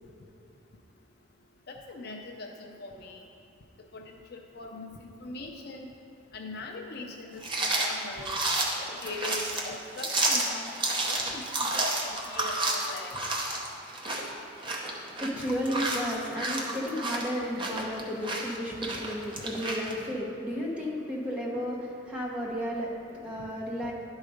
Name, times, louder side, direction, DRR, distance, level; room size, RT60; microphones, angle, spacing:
voice 1, 1.7-3.3 3.9-5.9 6.3-8.3 9.0-10.7 11.1-13.2 18.7-18.8 23.4-23.5, left 3 dB, 50° left, 2 dB, 0.5 m, -41 dB
sound 1, 7.4-19.9, right 2 dB, 25° right, 0.8 m, -31 dB
voice 2, 14.7-23.9, equal, 5° right, -4 dB, 1.1 m, -33 dB
11.5 x 4.0 x 5.0 m, 2.8 s
head